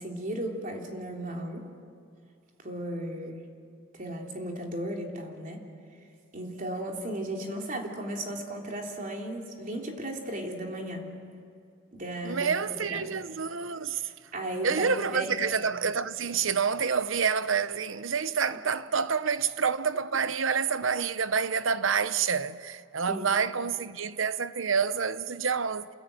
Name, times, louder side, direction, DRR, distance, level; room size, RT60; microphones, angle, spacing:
voice 1, 0.0-1.7 2.6-3.4 4.0-5.7 6.3-11.1 11.9-12.5 12.8-13.3 14.3-15.3 18.5-18.6 23.1-23.3, right 1 dB, 40° right, 3.4 m, -35 dB
voice 2, 12.2-14.0 14.6-25.9, right 6 dB, 75° right, 0.9 m, -28 dB
28.5 x 21.0 x 9.0 m
head